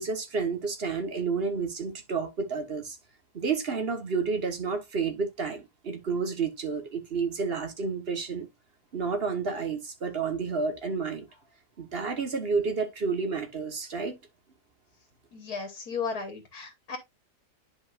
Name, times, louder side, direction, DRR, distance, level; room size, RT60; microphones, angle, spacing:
voice 1, 0.0-3.0 3.3-8.5 8.9-11.3 11.8-14.1, right 5 dB, 40° right, 1.5 m, -30 dB
voice 2, 15.3-17.0, left 5 dB, 70° left, 1.9 m, -35 dB
10.5 x 5.1 x 2.5 m
omnidirectional pair, 1.7 m